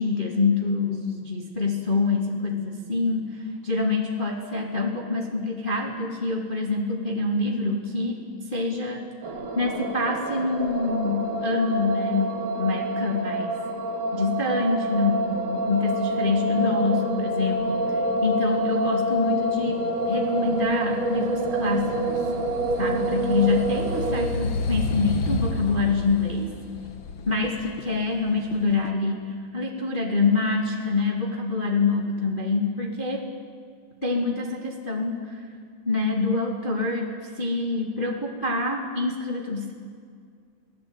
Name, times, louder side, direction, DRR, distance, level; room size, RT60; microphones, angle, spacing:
voice 1, 0.0-8.2 8.5-9.0 9.5-13.6 14.1-22.3 22.8-26.5 27.3-33.3 34.0-35.5 35.8-39.7, left 3 dB, 15° left, 0 dB, 2.1 m, -26 dB
sound 1, 9.2-24.3, right 1 dB, 90° right, 4.2 m, -27 dB
sound 2, 17.5-28.9, left 2 dB, 85° left, 1.0 m, -33 dB
29.5 x 19.5 x 9.1 m, 2.1 s
omnidirectional pair, 4.3 m